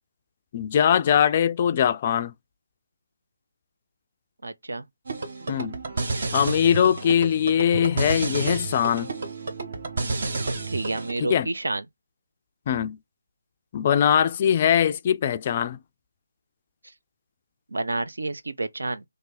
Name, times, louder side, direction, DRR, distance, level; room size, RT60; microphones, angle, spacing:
voice 1, 0.5-2.3 5.5-5.8 6.3-9.1 11.2-11.5 12.7-13.0 13.7-15.8, left 9 dB, 30° left, 0.3 m, -21 dB
voice 2, 4.4-4.8 10.7-11.8 17.7-19.0, right 2 dB, 70° right, 0.5 m, -29 dB
sound 1, 5.1-11.1, right 3 dB, 50° right, 0.9 m, -30 dB
3.3 x 2.6 x 4.0 m
figure-of-eight pair, 150°, 0 cm